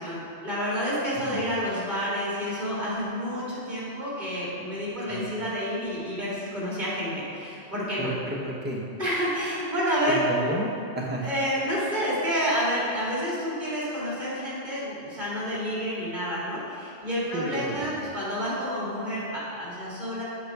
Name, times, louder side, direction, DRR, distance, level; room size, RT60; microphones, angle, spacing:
voice 1, 0.0-8.1 9.0-10.2 11.2-20.2, equal, 40° right, -7 dB, 2.3 m, -29 dB
voice 2, 8.0-8.8 10.1-10.7 10.9-11.3 17.3-17.9, right 1 dB, 10° right, -3 dB, 0.9 m, -31 dB
7.7 x 6.1 x 4.8 m, 2.7 s
omnidirectional pair, 1.2 m